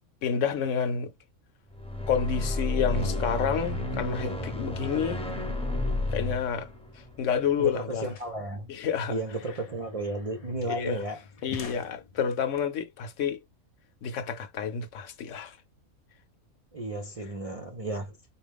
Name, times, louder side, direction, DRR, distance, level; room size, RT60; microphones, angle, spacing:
voice 1, 0.2-1.1 2.1-5.2 6.1-6.7 7.0-8.1 8.7-9.2 10.7-11.0 11.4-13.4 14.0-15.6, left 7 dB, 70° left, 1.0 m, -29 dB
sound 1, 1.7-8.1, left 2 dB, 5° left, 0.7 m, -32 dB
sound 2, 7.1-7.2 7.4-12.6, left 4 dB, 50° left, 0.4 m, -46 dB
voice 2, 7.6-8.7 9.1-11.2 16.7-18.1, right 2 dB, 40° right, 0.5 m, -33 dB
4.4 x 2.4 x 3.4 m
omnidirectional pair, 1.4 m